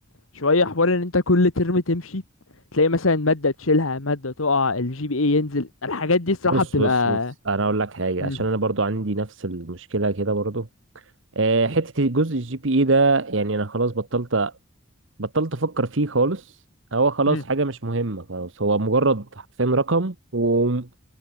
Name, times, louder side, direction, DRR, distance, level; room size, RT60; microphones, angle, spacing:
voice 1, 0.3-2.2 2.7-7.3 8.2-8.4 17.3-17.4, left 3 dB, 90° left, 1.7 m, -22 dB
voice 2, 6.5-7.2 7.5-10.7 11.3-14.5 15.2-16.5 16.9-21.0, right 3 dB, 65° right, 1.3 m, -23 dB
head